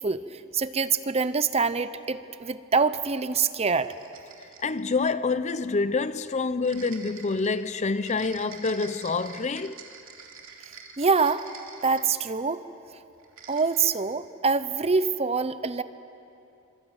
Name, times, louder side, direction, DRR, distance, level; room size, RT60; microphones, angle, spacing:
voice 1, 0.0-3.9 11.0-11.5 11.8-12.6 13.5-15.8, right 4 dB, 30° right, 0.8 m, -25 dB
sound 1, 3.7-4.9 6.6-12.5 13.2-14.1, right 6 dB, 70° right, 3.0 m, -47 dB
voice 2, 4.6-9.9, left 4 dB, 35° left, 0.6 m, -27 dB
26.0 x 25.5 x 9.0 m
head